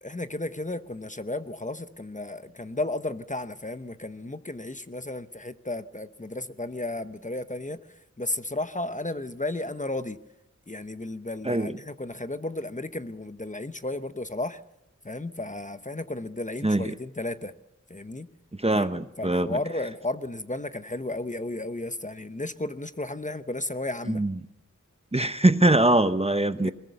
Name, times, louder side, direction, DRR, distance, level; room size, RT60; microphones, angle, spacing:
voice 1, 0.0-7.8 8.2-10.2 10.7-14.6 15.0-17.5 17.9-18.3 18.7-18.9 19.2-24.2 26.5-26.7, left 2 dB, 25° left, 11 dB, 0.9 m, -33 dB
voice 2, 11.4-11.8 16.6-16.9 18.6-19.6 24.1-24.4 25.1-26.7, right 1 dB, 20° right, 12 dB, 0.8 m, -22 dB
21.5 x 21.0 x 7.0 m, 0.85 s
wide cardioid pair, 60°, 31 cm